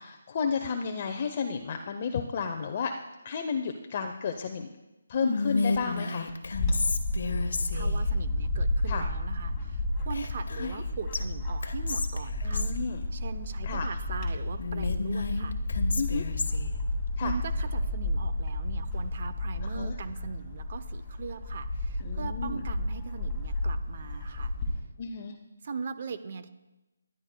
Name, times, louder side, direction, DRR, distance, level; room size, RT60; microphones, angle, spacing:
voice 1, 0.0-2.9 3.2-4.7 5.1-6.3 8.9-9.0 10.6-10.7 12.4-13.0 13.7-13.9 16.0-16.2 17.2-17.3 19.7-19.9 22.0-22.6 25.0-25.3, left 6 dB, 30° left, 5 dB, 0.6 m, -32 dB
Whispering, 5.2-8.1 10.1-10.8 11.1-11.2 11.6-12.8 14.6-16.7, left 3 dB, 65° left, 1.2 m, -32 dB
Bird / Wind, 6.5-24.8, left 1 dB, 15° left, 2.1 m, -31 dB
voice 2, 7.7-12.7 13.1-15.6 17.2-24.5 25.6-26.5, right 5 dB, 40° right, 11 dB, 0.6 m, -40 dB
22.0 x 11.0 x 2.2 m, 1.0 s
hypercardioid pair, 170°, 0 cm